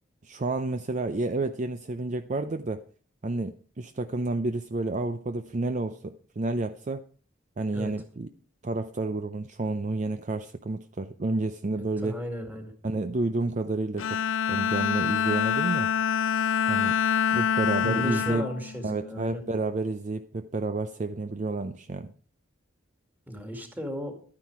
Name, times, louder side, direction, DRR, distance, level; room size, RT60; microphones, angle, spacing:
voice 1, 0.2-2.8 3.2-7.0 7.6-8.3 8.6-12.2 12.8-14.2 14.5-15.9 16.7-17.0 17.3-18.5 18.8-22.1, right 2 dB, 35° right, 10 dB, 0.5 m, -30 dB
voice 2, 12.0-12.7 17.8-19.4 23.3-24.1, equal, 10° right, 4 dB, 2.2 m, -35 dB
Bowed string instrument, 14.0-19.5, left 7 dB, 75° left, 0.4 m, -26 dB
12.0 x 9.8 x 4.7 m, 0.42 s
head